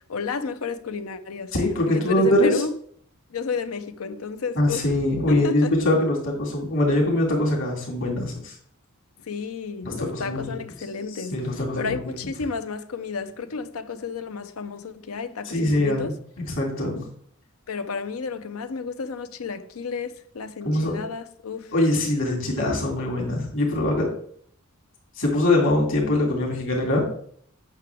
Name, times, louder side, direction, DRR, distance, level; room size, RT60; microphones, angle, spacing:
voice 1, 0.1-1.5 1.9-2.8 3.3-4.9 5.3-5.7 9.2-16.2 17.7-21.7 22.4-22.8, left 5 dB, 80° left, 0.6 m, -32 dB
voice 2, 1.5-2.6 4.6-8.5 9.8-10.6 11.1-12.0 15.4-16.1 16.6-17.0 20.6-21.1 21.7-24.1 25.2-27.0, left 1 dB, 60° left, 2.7 m, -23 dB
8.9 x 6.0 x 3.5 m
head